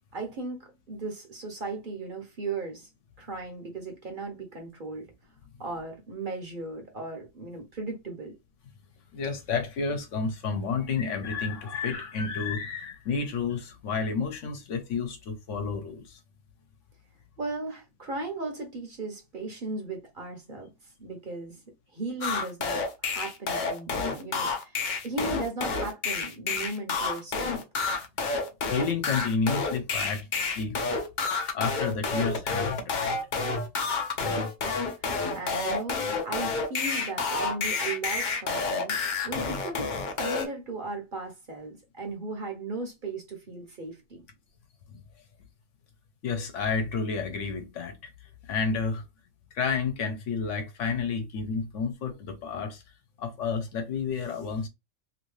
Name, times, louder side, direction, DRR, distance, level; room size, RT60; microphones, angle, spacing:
voice 1, 0.1-2.9 3.2-5.1 5.6-8.3 17.4-20.7 21.0-21.6 21.9-27.6 34.2-44.2, right 3 dB, 45° right, 0.9 m, -37 dB
voice 2, 9.1-16.2 28.7-30.8 31.5-33.2 44.9-45.0 46.2-48.1 48.4-49.0 49.5-52.8 53.2-54.7, left 5 dB, 70° left, 1.1 m, -30 dB
sound 1, 22.2-40.5, left 4 dB, 50° left, 0.6 m, -29 dB
2.9 x 2.7 x 3.1 m
omnidirectional pair, 1.3 m